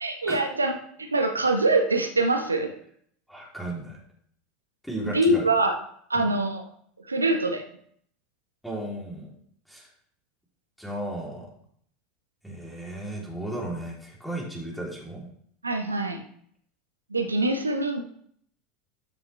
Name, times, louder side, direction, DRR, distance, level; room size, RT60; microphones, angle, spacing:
voice 1, 0.0-2.7 5.1-5.7 6.1-6.7 7.0-7.6 15.6-16.2 17.1-18.0, right 2 dB, 85° right, 5 dB, 1.2 m, -24 dB
voice 2, 3.3-4.0 4.8-5.5 6.1-6.3 8.6-9.3 9.7-9.9 10.8-11.5 12.4-15.3, right 1 dB, ahead, -4 dB, 3.5 m, -35 dB
13.0 x 7.1 x 3.4 m, 0.63 s
figure-of-eight pair, 80°, 0 cm